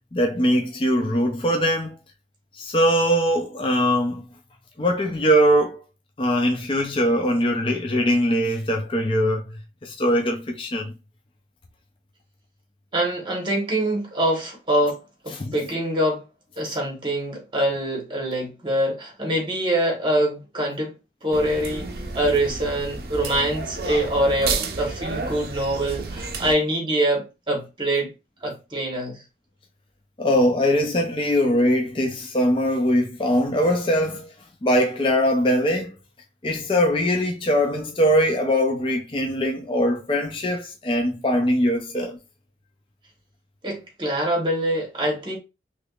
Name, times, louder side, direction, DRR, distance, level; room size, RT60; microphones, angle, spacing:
voice 1, 0.1-2.0 2.6-4.3 4.8-5.8 6.2-9.6 9.8-10.9 15.4-15.5 30.2-34.3 34.6-35.9 36.4-42.2, equal, 30° left, 0.5 m, -21 dB
voice 2, 12.9-16.2 16.6-20.9 21.2-21.9 22.1-28.1 28.4-29.2 43.6-45.4, right 1 dB, 25° right, 1.1 m, -24 dB
sound 1, 21.3-26.5, right 4 dB, 55° right, 0.5 m, -31 dB
3.4 x 3.0 x 2.4 m
head